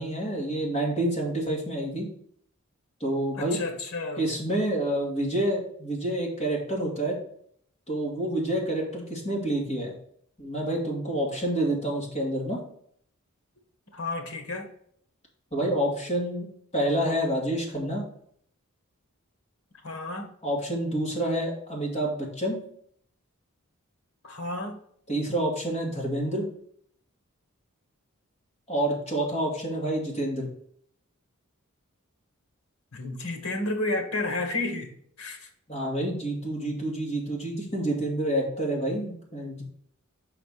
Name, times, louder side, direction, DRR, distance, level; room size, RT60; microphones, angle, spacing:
voice 1, 0.0-2.1 3.0-3.6 4.2-7.2 7.9-9.9 10.4-12.6 15.5-16.5 16.7-18.0 20.4-22.6 25.1-26.5 28.7-30.5 35.7-39.6, right 1 dB, 30° left, 2.2 m, -28 dB
voice 2, 3.3-4.4 13.9-14.7 19.8-20.3 24.2-24.8 32.9-34.9 35.2-35.5, left 2 dB, 85° left, 1.5 m, -31 dB
5.7 x 4.2 x 5.5 m
head